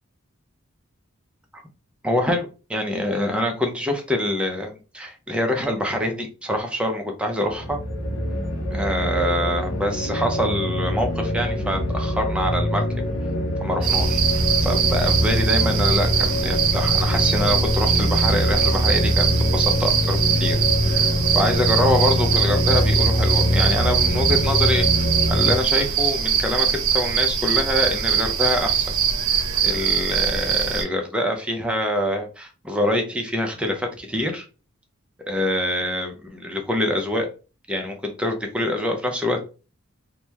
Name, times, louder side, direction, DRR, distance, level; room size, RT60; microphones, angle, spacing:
voice 1, 2.0-7.8 8.7-13.1 13.6-28.9 29.6-34.5 35.3-37.3 37.7-39.4, left 1 dB, 5° right, 3 dB, 0.5 m, -25 dB
sound 1, 7.4-25.6, equal, 75° left, 0.7 m, -23 dB
sound 2, 13.8-30.8, right 7 dB, 85° right, 0.6 m, -22 dB
2.8 x 2.1 x 3.3 m, 0.33 s
head